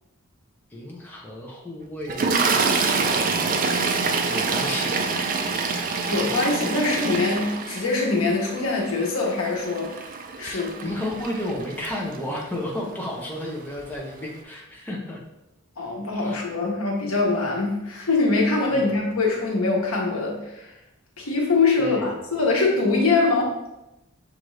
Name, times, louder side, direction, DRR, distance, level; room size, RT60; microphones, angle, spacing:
voice 1, 0.7-2.7 3.9-5.1 10.4-15.2 16.1-16.4 18.7-19.0 21.8-22.0, left 1 dB, 10° left, -3 dB, 0.7 m, -33 dB
Toilet flush, 2.1-12.4 13.3-13.5 13.8-14.0, right 4 dB, 40° right, 0.4 m, -26 dB
voice 2, 6.1-9.9 10.4-10.9 15.8-20.7 21.2-23.6, left 3 dB, 85° left, -1 dB, 1.0 m, -23 dB
6.2 x 2.6 x 3.1 m, 0.91 s
head